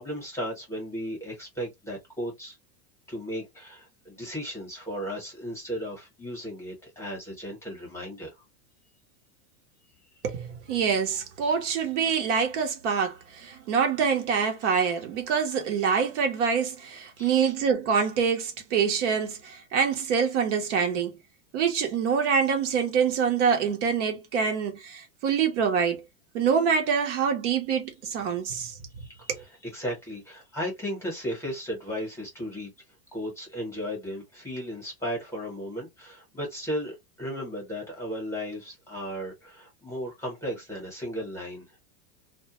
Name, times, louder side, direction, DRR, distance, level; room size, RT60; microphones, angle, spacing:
voice 1, 0.0-2.6 3.1-8.3 17.2-17.5 29.0-29.3 29.6-32.7 33.1-41.8, equal, 5° left, 0.9 m, -35 dB
voice 2, 10.2-21.2 21.5-26.0 26.3-29.4, right 6 dB, 60° right, 0.8 m, -26 dB
2.2 x 2.2 x 2.8 m
supercardioid pair, 160°, 40 cm